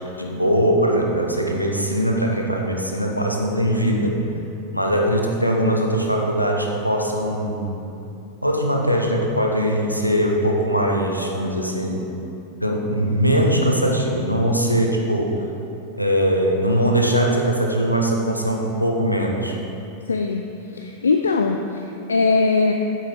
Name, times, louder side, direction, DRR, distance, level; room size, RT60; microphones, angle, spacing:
voice 1, 0.2-4.2 4.7-7.8 8.4-12.1 12.6-15.4 16.0-19.6, equal, 90° left, 0 dB, 0.9 m, -21 dB
voice 2, 20.1-20.4 20.7-22.7, left 4 dB, 75° left, 4 dB, 0.4 m, -20 dB
8.5 x 7.8 x 3.8 m, 2.8 s
figure-of-eight pair, 90°, 0 cm